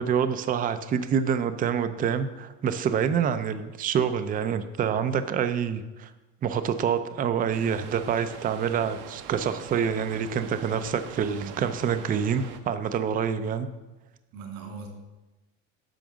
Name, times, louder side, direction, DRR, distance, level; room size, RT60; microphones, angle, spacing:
voice 1, 0.0-6.1 6.4-13.7, right 7 dB, 25° right, 10 dB, 0.5 m, -27 dB
sound 1, 7.5-12.6, right 8 dB, 65° right, 0.9 m, -43 dB
voice 2, 11.4-11.7 14.3-14.9, right 5 dB, 85° right, 1 dB, 2.9 m, -40 dB
8.9 x 5.9 x 6.2 m, 1.1 s
cardioid pair, 140°, 33 cm